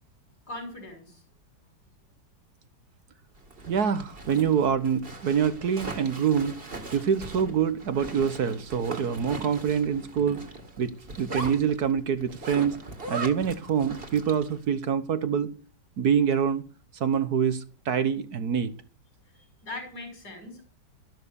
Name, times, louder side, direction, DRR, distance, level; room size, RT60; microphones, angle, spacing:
voice 1, 0.5-1.2 19.3-20.6, left 2 dB, 60° left, 4 dB, 6.6 m, -40 dB
Zipper (clothing), 3.4-14.6, right 2 dB, 30° right, 2.4 m, -39 dB
voice 2, 3.7-6.6 6.9-10.4 10.8-12.8 13.1-15.5 16.0-16.6 17.0-18.7, right 7 dB, 60° right, 12 dB, 1.5 m, -25 dB
13.5 x 12.0 x 7.0 m, 0.41 s
omnidirectional pair, 1.9 m